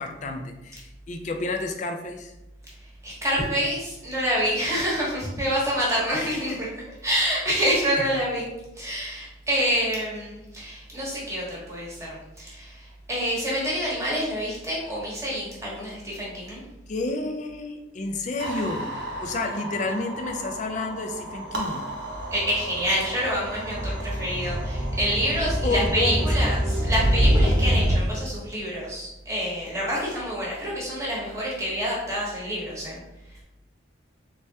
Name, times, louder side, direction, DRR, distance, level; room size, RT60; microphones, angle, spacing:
voice 1, 0.0-2.3 6.1-6.6 8.0-8.1 16.9-18.9 19.2-21.8 25.6-26.3, left 2 dB, 40° left, 4 dB, 0.4 m, -30 dB
voice 2, 3.0-6.7 7.0-16.6 22.3-33.0, equal, 15° right, -5 dB, 1.0 m, -27 dB
sound 1, 18.4-28.0, equal, 65° right, 0.8 m, -26 dB
3.4 x 3.2 x 2.8 m, 0.94 s
head